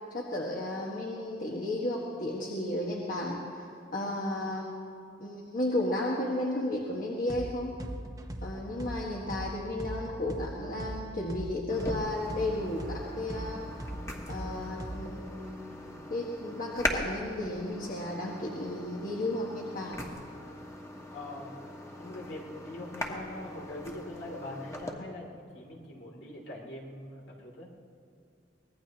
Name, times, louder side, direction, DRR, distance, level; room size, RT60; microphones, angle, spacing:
voice 1, 0.1-3.7 3.9-4.7 5.2-7.7 8.4-13.6 14.3-15.6 16.1-19.9, left 1 dB, 50° left, -3 dB, 1.5 m, -33 dB
sound 1, 7.3-7.5 7.8-11.5 11.8-15.2, right 1 dB, 20° right, 0.9 m, -39 dB
sound 2, 11.7-24.9, left 1 dB, 15° left, 1.4 m, -40 dB
voice 2, 21.1-21.6 22.0-27.7, left 1 dB, 85° left, -1 dB, 2.9 m, -43 dB
24.5 x 19.0 x 3.0 m, 2.6 s
head